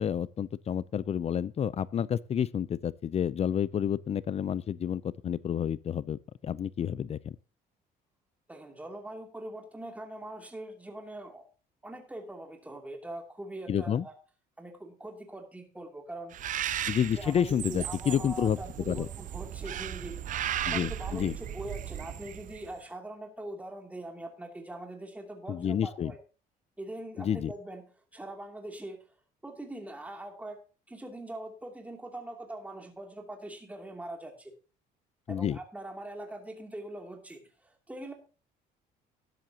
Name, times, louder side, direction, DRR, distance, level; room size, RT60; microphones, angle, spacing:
voice 1, 0.0-7.4 13.7-14.1 16.9-18.6 18.9-19.1 20.6-21.3 25.5-26.1 27.2-27.5 35.3-35.6, left 8 dB, 40° left, 0.5 m, -30 dB
voice 2, 8.5-11.4 11.8-14.1 14.6-16.3 17.2-20.2 20.6-26.2 26.8-27.8 28.1-29.0 29.4-30.6 30.9-34.5 35.3-38.1, right 1 dB, 10° right, 2.7 m, -42 dB
Bird, 16.3-22.7, right 11 dB, 50° right, 0.6 m, -36 dB
13.0 x 10.5 x 2.9 m
cardioid pair, 110°, 17 cm